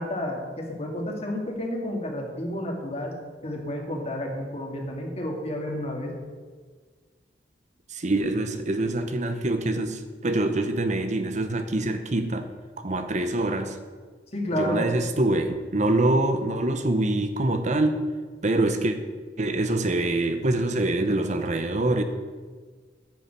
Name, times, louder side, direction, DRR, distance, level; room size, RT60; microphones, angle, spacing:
voice 1, 0.0-3.1 3.4-6.2 14.3-14.9, left 1 dB, 35° left, 1 dB, 2.5 m, -31 dB
voice 2, 7.9-12.5 12.8-13.8 14.5-18.0 18.4-19.0 19.4-22.0, right 2 dB, 45° right, 8 dB, 0.9 m, -25 dB
9.7 x 7.1 x 9.1 m, 1.5 s
head